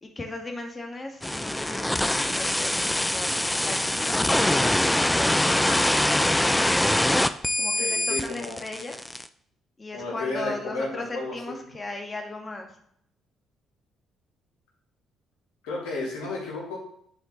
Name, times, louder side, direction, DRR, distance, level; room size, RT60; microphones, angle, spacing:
voice 1, 0.0-3.3 3.6-5.9 7.6-9.0 9.8-12.7, left 2 dB, 30° left, 3 dB, 1.7 m, -37 dB
sound 1, 1.2-9.3, left 1 dB, 10° left, 0.5 m, -24 dB
voice 2, 7.6-8.6 9.9-11.6 15.6-16.8, left 2 dB, 80° left, -3 dB, 2.8 m, -33 dB
10.0 x 4.5 x 4.0 m, 0.68 s
hypercardioid pair, 50°, 0 cm